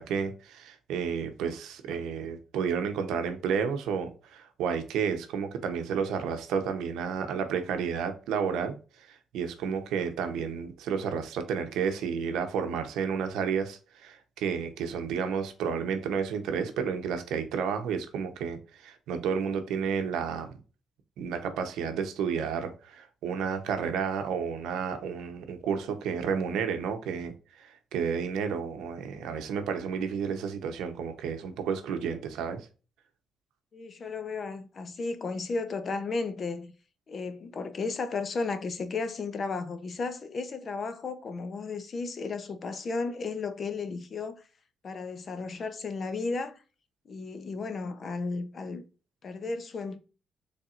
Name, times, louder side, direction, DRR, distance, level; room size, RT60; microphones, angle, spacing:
voice 1, 0.0-20.6 21.2-32.7, right 6 dB, 85° right, 0.7 m, -31 dB
voice 2, 33.7-36.7 37.1-44.4 44.8-46.6 47.1-48.8 49.2-50.0, left 4 dB, 45° left, 0.7 m, -34 dB
4.2 x 3.4 x 2.4 m
cardioid pair, 90°, 0 cm